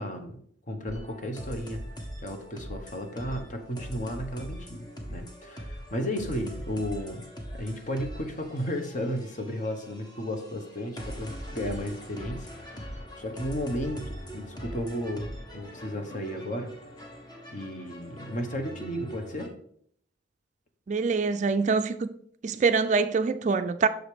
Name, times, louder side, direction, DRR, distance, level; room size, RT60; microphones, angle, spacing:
voice 1, 0.0-1.8 2.2-4.8 5.1-7.3 7.5-16.7 17.5-19.5, equal, 40° left, 1.1 m, -34 dB
sound 1, 0.9-19.5, equal, 20° left, 1.1 m, -41 dB
voice 2, 20.9-22.1 22.4-23.9, right 4 dB, 40° right, 0.3 m, -24 dB
6.4 x 5.1 x 4.8 m
head